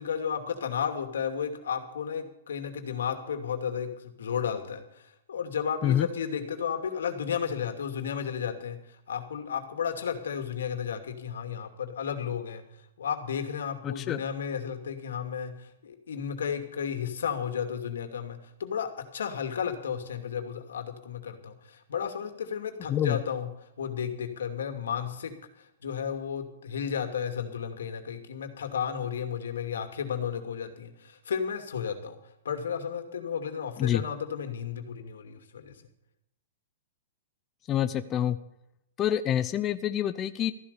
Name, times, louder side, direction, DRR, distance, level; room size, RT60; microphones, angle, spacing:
voice 1, 0.0-12.6 13.0-23.5 23.8-32.2 32.4-35.8, left 7 dB, 85° left, 7 dB, 2.5 m, -33 dB
voice 2, 13.8-14.2 22.9-23.2 33.8-34.0 37.7-38.4 39.0-40.5, left 11 dB, 25° left, 11 dB, 0.6 m, -27 dB
14.0 x 11.0 x 6.9 m, 0.81 s
hypercardioid pair, 145°, 0 cm